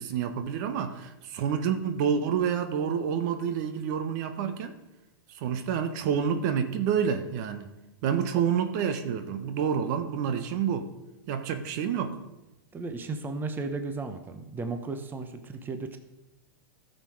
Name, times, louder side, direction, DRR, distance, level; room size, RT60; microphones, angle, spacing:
voice 1, 0.0-4.8 5.3-7.7 8.0-10.9 11.3-12.2, right 7 dB, 55° right, 1.2 m, -28 dB
voice 2, 12.7-16.0, right 3 dB, 15° right, 1.0 m, -35 dB
13.5 x 6.7 x 4.9 m
hypercardioid pair, 115°, 12 cm